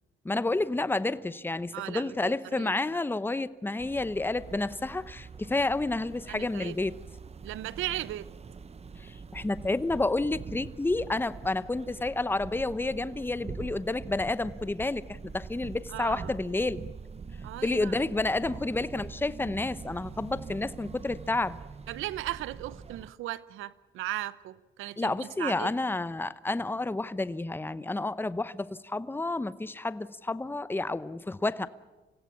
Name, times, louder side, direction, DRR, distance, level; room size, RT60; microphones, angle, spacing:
voice 1, 0.2-6.9 9.0-16.8 17.6-21.6 25.0-31.7, left 2 dB, 10° left, 0.8 m, -30 dB
voice 2, 1.7-3.0 6.3-6.8 7.4-8.3 15.9-16.3 17.4-18.6 21.9-25.7, right 15 dB, 90° right, 0.8 m, -37 dB
sound 1, 3.8-23.1, right 5 dB, 30° right, 1.0 m, -44 dB
26.0 x 17.0 x 8.5 m
cardioid pair, 90°, 20 cm